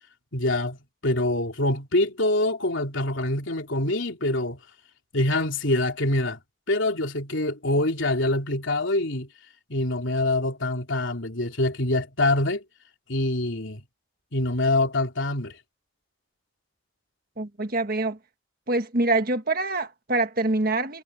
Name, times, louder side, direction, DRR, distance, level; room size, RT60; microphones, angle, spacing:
voice 1, 0.3-0.8 1.0-4.6 5.1-6.4 6.7-9.3 9.7-12.6 13.1-13.8 14.3-15.6, left 2 dB, 70° left, 3.0 m, -25 dB
voice 2, 17.4-18.2 18.7-21.0, right 2 dB, 45° right, 1.6 m, -25 dB
head